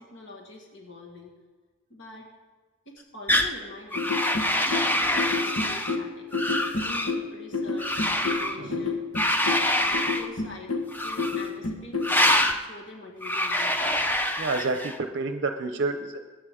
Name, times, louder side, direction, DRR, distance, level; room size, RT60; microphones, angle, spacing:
voice 1, 0.0-1.3 1.9-2.3 2.9-6.3 6.6-9.0 9.8-13.9, left 2 dB, 60° left, 0 dB, 1.9 m, -44 dB
sound 1, 3.3-3.5 3.9-6.0 6.3-7.1 7.8-8.6 9.1-10.3 10.9-11.5 12.0-12.6 13.2-15.0, left 1 dB, 10° left, 0.6 m, -25 dB
sound 2, 3.9-12.2, left 3 dB, 85° left, 1.5 m, -30 dB
voice 2, 14.4-16.2, right 3 dB, 55° right, 7 dB, 0.7 m, -29 dB
21.5 x 8.7 x 3.7 m, 1.3 s
head